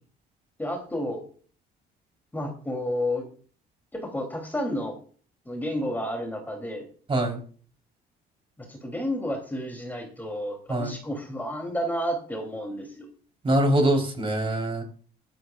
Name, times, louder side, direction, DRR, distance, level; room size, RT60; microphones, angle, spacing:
voice 1, 0.6-1.2 2.3-3.3 3.9-4.9 5.4-6.9 8.6-13.1, equal, 10° left, 2 dB, 3.2 m, -31 dB
voice 2, 7.1-7.4 10.7-11.0 13.4-14.8, right 1 dB, 30° right, 2 dB, 3.9 m, -23 dB
15.5 x 11.5 x 2.5 m, 0.42 s
cardioid pair, 110°, 17 cm